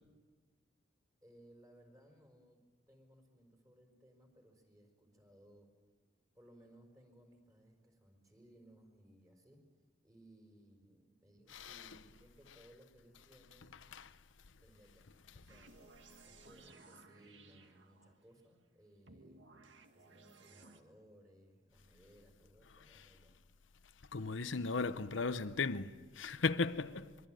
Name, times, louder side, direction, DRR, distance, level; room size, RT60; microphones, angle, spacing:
voice 1, 1.2-5.7 6.3-9.6 10.0-13.8 14.6-15.8 16.2-19.5 19.9-23.4, right 1 dB, 15° right, 5.1 m, -63 dB
voice 2, 11.5-12.0 13.7-14.2 15.3-15.4 22.7-23.2 24.0-27.2, left 4 dB, 75° left, 0.9 m, -37 dB
sound 1, 15.5-18.3 19.1-20.8, right 3 dB, 65° right, 2.0 m, -60 dB
25.0 x 23.5 x 9.2 m
head